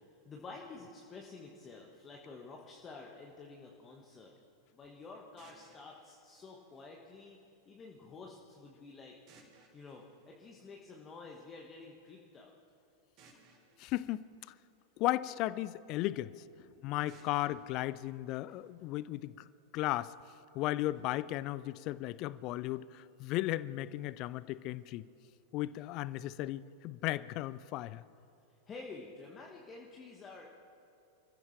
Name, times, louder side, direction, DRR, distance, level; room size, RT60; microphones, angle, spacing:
voice 1, 0.2-4.3 4.7-7.4 7.6-9.2 9.7-12.5 16.6-17.0 18.5-18.6 20.9-21.1 28.7-30.5, left 3 dB, 25° left, 0 dB, 1.6 m, -50 dB
sound 1, 5.4-7.4 9.3-11.2 13.2-15.4 17.1-19.1, right 3 dB, 40° right, 4.1 m, -65 dB
voice 2, 13.8-14.5 15.0-16.3 16.8-19.5 19.7-20.1 20.5-25.1 25.5-28.0, left 16 dB, 40° left, 18 dB, 0.5 m, -35 dB
27.0 x 15.0 x 3.4 m, 2.8 s
figure-of-eight pair, 90°, 0 cm